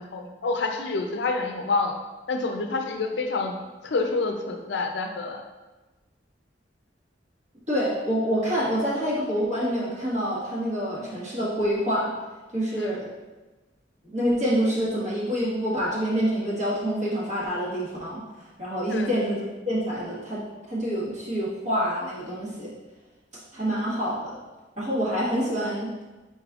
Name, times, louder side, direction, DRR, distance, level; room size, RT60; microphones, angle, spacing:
voice 1, 0.0-2.0 2.3-3.5 3.8-5.4 12.8-13.0 18.9-19.1, left 3 dB, 70° left, 4 dB, 0.5 m, -28 dB
voice 2, 7.7-12.1 12.5-13.1 14.1-18.2 18.6-20.4 20.7-22.7 23.5-24.4 24.8-25.9, equal, 40° right, -7 dB, 1.4 m, -26 dB
4.9 x 4.1 x 2.4 m, 1.2 s
head